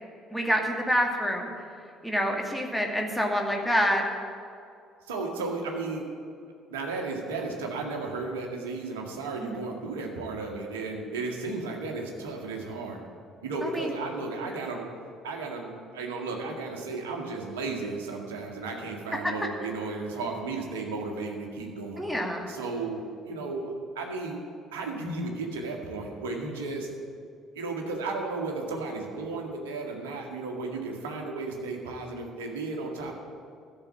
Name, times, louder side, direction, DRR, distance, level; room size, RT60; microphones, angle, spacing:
voice 1, 0.3-1.5 2.0-4.0 9.4-9.6 13.7-13.9 14.4-14.5 22.0-22.5, equal, ahead, 0 dB, 2.2 m, -27 dB
voice 2, 5.1-6.0 6.7-13.0 13.4-14.9 15.2-22.1 22.5-24.4 24.7-26.9 27.6-33.1, right 3 dB, 70° right, 1 dB, 1.9 m, -34 dB
13.5 x 6.9 x 8.6 m, 2.4 s
figure-of-eight pair, 50°, 0 cm